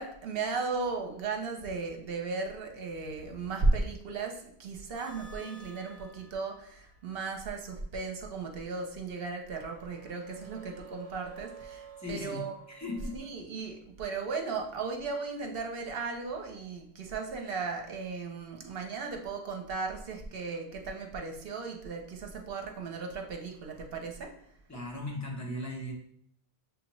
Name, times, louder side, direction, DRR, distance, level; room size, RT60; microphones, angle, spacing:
voice 1, 0.0-12.6 13.1-24.3, right 3 dB, 65° right, 3 dB, 0.9 m, -35 dB
sound 1, 4.9-7.3 9.1-13.3, right 5 dB, 40° right, 1.3 m, -51 dB
voice 2, 12.0-13.1 24.7-25.9, left 1 dB, 15° left, -2 dB, 0.9 m, -38 dB
6.7 x 2.4 x 3.0 m, 0.65 s
omnidirectional pair, 1.1 m